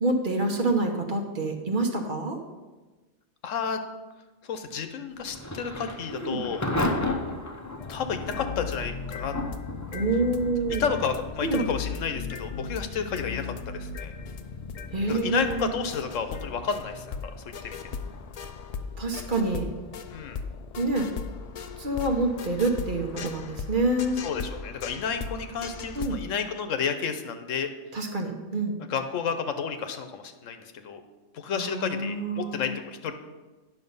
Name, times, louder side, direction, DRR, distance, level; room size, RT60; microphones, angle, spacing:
voice 1, 0.0-2.4 6.1-6.4 9.9-10.8 11.4-11.6 14.9-15.7 19.0-19.7 20.8-21.1 21.8-24.2 25.9-26.2 27.9-28.7 31.5-32.8, right 2 dB, 45° right, 3 dB, 1.1 m, -27 dB
voice 2, 3.4-3.8 4.4-6.7 7.9-9.3 10.8-14.2 15.1-17.2 17.6-17.8 20.1-20.4 24.2-27.7 28.9-31.0 31.3-33.1, left 6 dB, 85° left, 8 dB, 1.2 m, -31 dB
Thunder / Rain, 5.1-21.9, left 2 dB, 20° left, 0.6 m, -37 dB
sound 1, 7.8-26.2, left 5 dB, 65° left, 0.3 m, -37 dB
9.8 x 6.2 x 5.5 m, 1.2 s
omnidirectional pair, 1.3 m